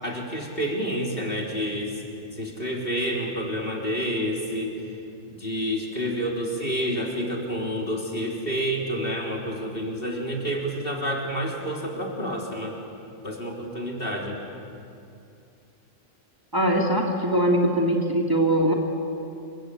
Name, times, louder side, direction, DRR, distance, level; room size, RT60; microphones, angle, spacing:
voice 1, 0.0-2.0 2.3-4.8 5.3-12.8 13.2-14.4, equal, 45° left, -1 dB, 3.8 m, -29 dB
voice 2, 16.5-18.7, right 1 dB, 15° right, -1 dB, 2.7 m, -21 dB
28.0 x 24.0 x 8.4 m, 2.5 s
omnidirectional pair, 1.4 m